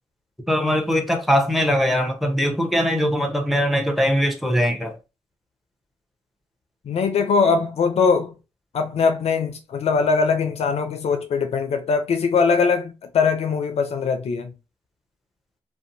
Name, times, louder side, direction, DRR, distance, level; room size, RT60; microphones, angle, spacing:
voice 1, 0.5-5.0, equal, ahead, 0.8 m, -21 dB
voice 2, 6.9-8.4 8.7-14.5, left 5 dB, 60° left, 0.4 m, -21 dB
2.5 x 2.1 x 2.6 m
hypercardioid pair, 45°, 12 cm